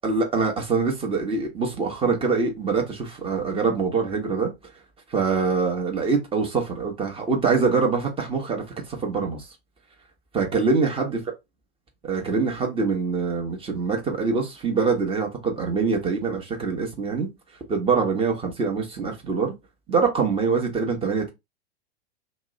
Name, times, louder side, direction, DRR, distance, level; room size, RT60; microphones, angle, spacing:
voice 1, 0.0-4.5 5.1-9.5 10.3-11.2 12.0-17.3 17.7-19.5 19.9-21.3, right 4 dB, 15° right, 1.0 m, -24 dB
2.9 x 2.1 x 3.6 m
figure-of-eight pair, 95°, 32 cm